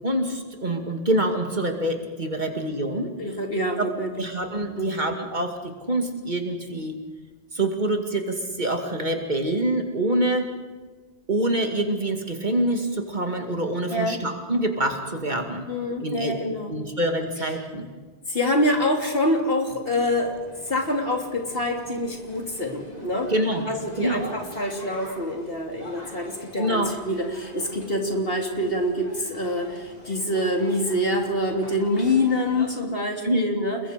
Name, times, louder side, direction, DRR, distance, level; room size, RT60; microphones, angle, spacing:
voice 1, 0.0-3.1 3.8-3.9 4.2-7.0 7.5-10.5 11.3-15.7 16.0-16.3 16.7-17.9 23.3-23.7 24.0-24.2 26.6-26.9 33.2-33.5, right 1 dB, 45° right, 4 dB, 2.5 m, -26 dB
voice 2, 3.2-4.2 4.8-5.0 13.9-14.2 15.7-16.7 18.3-20.4 20.7-23.3 23.7-33.8, left 1 dB, 60° left, 2 dB, 3.2 m, -26 dB
sound 1, 20.0-32.7, left 1 dB, 40° left, 4.4 m, -44 dB
29.0 x 21.5 x 5.2 m, 1.4 s
omnidirectional pair, 1.1 m